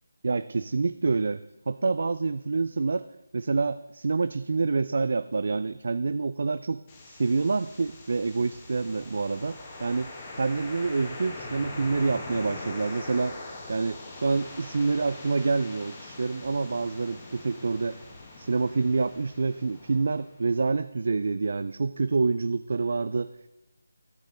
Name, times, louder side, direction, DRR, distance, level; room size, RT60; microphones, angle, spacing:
voice 1, 0.2-3.1 3.3-13.4 13.7-18.0 18.4-23.3, right 4 dB, 55° right, 12 dB, 0.3 m, -27 dB
sound 1, 6.9-20.8, left 2 dB, 25° left, 1.4 m, -42 dB
13.5 x 7.2 x 3.9 m, 0.98 s
figure-of-eight pair, 160°, 0 cm